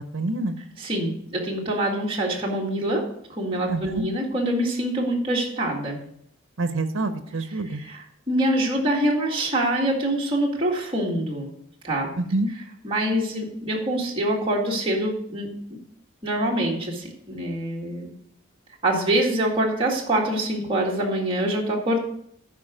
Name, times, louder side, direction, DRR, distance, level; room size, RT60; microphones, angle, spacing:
voice 1, 0.0-0.6 3.7-4.1 6.6-7.8 12.2-12.5, right 2 dB, 70° right, 9 dB, 0.8 m, -26 dB
voice 2, 0.8-3.0 3.3-6.0 7.8-8.0 8.3-11.5 11.8-12.1 12.8-15.5 16.2-18.1 18.8-22.0, right 1 dB, 25° right, -3 dB, 1.9 m, -25 dB
13.0 x 4.9 x 4.9 m, 0.69 s
head